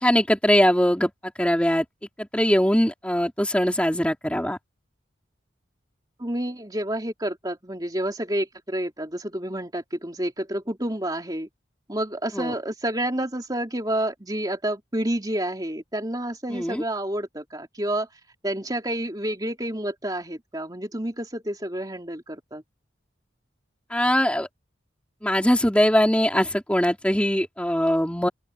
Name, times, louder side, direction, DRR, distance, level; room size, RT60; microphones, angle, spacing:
voice 1, 0.0-1.1 1.4-1.8 2.2-4.6 12.3-12.5 16.5-16.8 23.9-24.5 25.2-28.3, equal, 5° left, 3.4 m, -21 dB
voice 2, 6.2-11.5 11.9-18.1 18.4-22.6, right 1 dB, 20° right, 3.2 m, -29 dB
open air
head